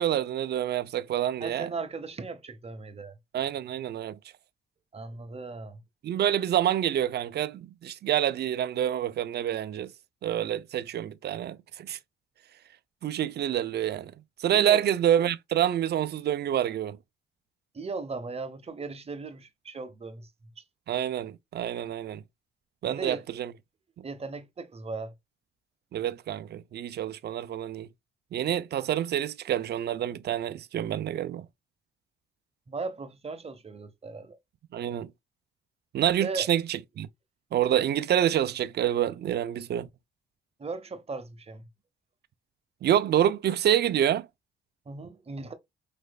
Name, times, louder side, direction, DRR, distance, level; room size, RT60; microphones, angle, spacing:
voice 1, 0.0-1.7 3.3-4.2 6.0-9.9 10.2-12.0 13.0-14.1 14.4-17.0 20.9-22.2 22.8-23.5 24.0-24.1 25.9-27.9 28.3-31.5 34.7-35.1 35.9-37.1 37.5-39.9 42.8-44.3, right 10 dB, 55° right, 0.5 m, -27 dB
voice 2, 1.4-3.1 4.9-5.8 14.5-14.8 17.7-20.3 20.6-20.7 22.8-23.2 24.0-25.1 32.7-34.4 36.2-36.5 40.6-41.6 44.9-45.5, right 4 dB, 30° right, 1.0 m, -37 dB
5.1 x 3.1 x 2.3 m
cardioid pair, 90°, 20 cm